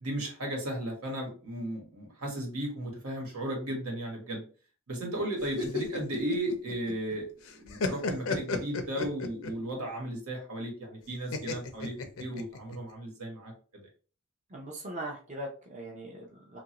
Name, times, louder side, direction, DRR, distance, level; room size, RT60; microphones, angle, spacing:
voice 1, 0.0-4.4 4.9-13.8, right 1 dB, 85° right, 0 dB, 1.3 m, -35 dB
sound 1, 5.4-7.1 7.5-9.7 11.3-12.8, left 4 dB, 70° left, 0.5 m, -33 dB
voice 2, 14.5-16.6, right 1 dB, 30° right, -1 dB, 0.5 m, -40 dB
3.0 x 2.5 x 2.9 m, 0.38 s
head